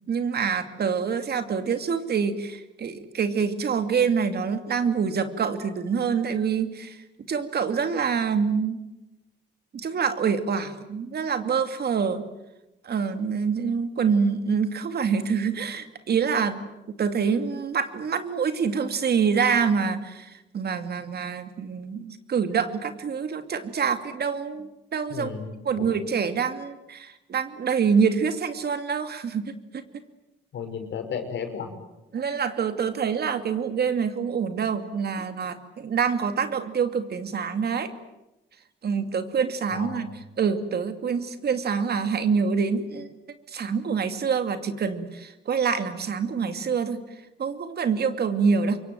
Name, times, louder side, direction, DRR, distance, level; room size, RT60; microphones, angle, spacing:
voice 1, 0.1-8.8 9.7-12.2 12.8-16.6 16.9-25.3 25.6-29.8 32.1-37.9 38.8-43.1 43.5-47.0 47.4-48.8, right 6 dB, 55° right, 9 dB, 2.6 m, -26 dB
voice 2, 25.1-25.5 25.8-25.9 30.5-31.7 39.7-40.2, left 6 dB, 70° left, 5 dB, 5.7 m, -34 dB
26.5 x 23.5 x 9.1 m, 1.0 s
cardioid pair, 90°, 20 cm